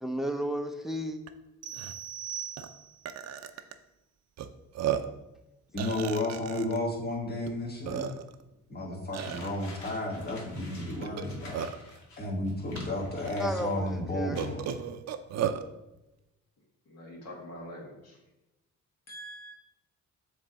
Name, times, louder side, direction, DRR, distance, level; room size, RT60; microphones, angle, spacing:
voice 1, 0.0-1.2 13.4-14.4, equal, ahead, 6 dB, 0.6 m, -33 dB
Burping eructation, 1.3-1.4 1.7-1.9 2.6-2.7 3.0-3.7 4.4-4.5 4.7-5.2 5.8-6.8 7.5-7.6 7.8-8.4 9.1-9.5 11.0-11.9 12.7-12.8 13.3-13.4 14.4-15.6, right 9 dB, 60° right, 0.5 m, -34 dB
sound 1, 1.6-3.1, right 9 dB, 40° right, 0.9 m, -40 dB
voice 2, 5.7-8.2 8.7-11.9 12.2-14.7, left 1 dB, 30° left, -1 dB, 1.7 m, -33 dB
sound 2, 9.2-14.0 14.3-14.8, left 2 dB, 75° left, 1.9 m, -50 dB
voice 3, 16.8-18.2 19.1-19.5, equal, 55° left, -3 dB, 1.8 m, -44 dB
7.2 x 3.3 x 4.0 m, 0.94 s
cardioid pair, 90°, 30 cm